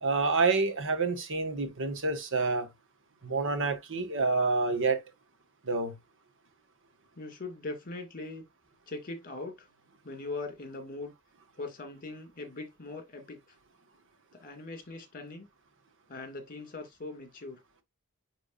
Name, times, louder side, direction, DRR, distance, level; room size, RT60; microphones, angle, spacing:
voice 1, 0.0-2.7 3.2-5.0 5.6-5.9, right 3 dB, 60° right, 1.6 m, -28 dB
voice 2, 7.2-8.4 8.9-9.7 10.0-11.1 11.6-13.4 14.3-15.5 16.1-17.6, left 3 dB, 40° left, 2.4 m, -41 dB
10.0 x 3.8 x 2.6 m
head